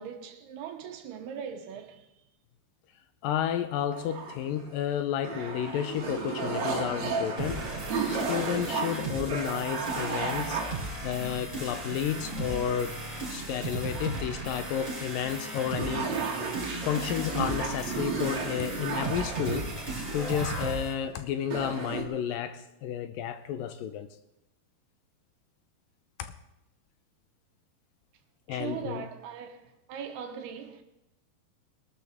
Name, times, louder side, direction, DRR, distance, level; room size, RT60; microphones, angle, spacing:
voice 1, 0.0-2.1 28.5-29.6 29.9-30.8, right 8 dB, 80° right, 3.1 m, -40 dB
voice 2, 3.2-7.6 8.1-10.6 11.0-13.0 13.3-16.2 16.8-19.7 20.1-24.1 26.2-26.3 28.5-29.0, left 9 dB, 80° left, 2.1 m, -31 dB
sound 1, 3.9-4.8 5.2-10.7 11.6-12.2 12.5-12.6 13.2-14.3 15.0-15.1 15.4-15.5 15.7-20.1 21.0-21.1 21.4-22.0, right 4 dB, 50° right, 3.0 m, -34 dB
sound 2, 7.4-20.9, right 2 dB, 15° right, 6.1 m, -36 dB
21.0 x 12.5 x 3.5 m
omnidirectional pair, 4.7 m